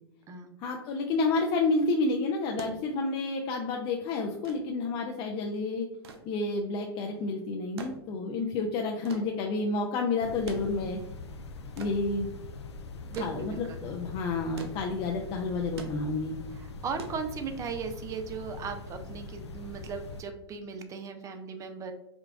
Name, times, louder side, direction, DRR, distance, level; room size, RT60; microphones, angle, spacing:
voice 1, 0.6-5.9 6.3-11.0 11.8-12.3 13.2-16.3, left 3 dB, 40° left, 1 dB, 0.5 m, -30 dB
sound 1, 2.6-17.9 19.1-19.2, right 4 dB, 75° right, 0.6 m, -47 dB
sound 2, 10.2-20.2, left 3 dB, 90° left, 0.4 m, -43 dB
voice 2, 13.1-13.8 16.8-21.9, right 5 dB, 25° right, 7 dB, 0.5 m, -37 dB
5.1 x 2.3 x 2.3 m, 0.89 s
hypercardioid pair, 110°, 14 cm